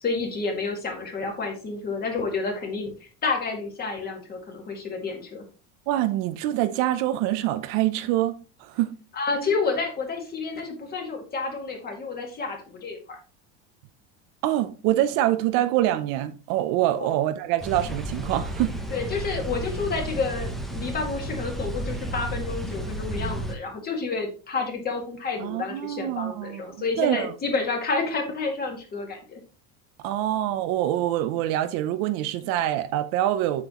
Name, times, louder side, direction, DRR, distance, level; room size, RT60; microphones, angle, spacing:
voice 1, 0.0-2.9 3.2-5.4 9.1-13.2 17.0-17.1 18.9-29.4, left 4 dB, 25° left, 2.0 m, -29 dB
voice 2, 5.9-8.9 14.4-18.7 25.4-27.3 30.0-33.7, right 13 dB, 60° right, 0.7 m, -25 dB
sound 1, 17.6-23.5, right 1 dB, ahead, 0.7 m, -32 dB
7.7 x 7.5 x 3.0 m
cardioid pair, 165°, 38 cm